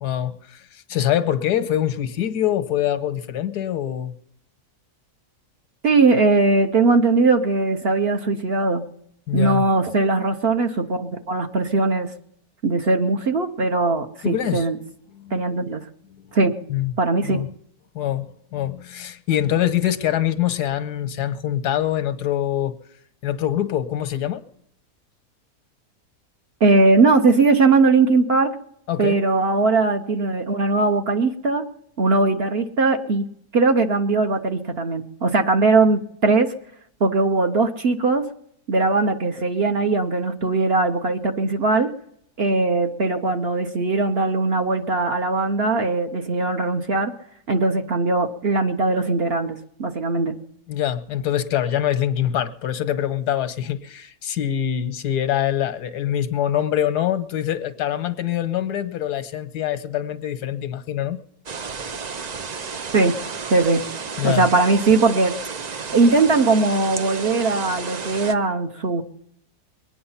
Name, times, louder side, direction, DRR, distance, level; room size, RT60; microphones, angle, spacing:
voice 1, 0.0-4.1 9.3-9.6 14.2-14.7 15.2-15.4 16.7-16.9 17.2-17.5 17.9-22.7 23.2-24.4 28.9-29.2 50.7-61.2 64.2-64.4, left 11 dB, 85° left, 12 dB, 1.5 m, -24 dB
voice 2, 5.8-8.8 9.3-12.1 12.6-14.8 15.3-15.8 16.3-16.5 17.0-17.4 26.6-28.6 29.0-31.6 32.0-33.3 33.5-36.5 37.0-38.3 38.7-41.9 42.4-47.1 47.5-50.4 62.9-63.1 63.5-63.8 64.2-65.3 65.9-69.0, right 3 dB, 50° right, 6 dB, 0.9 m, -20 dB
sound 1, 61.5-68.3, right 5 dB, 85° right, 0.3 m, -32 dB
22.5 x 9.5 x 5.7 m, 0.72 s
omnidirectional pair, 1.7 m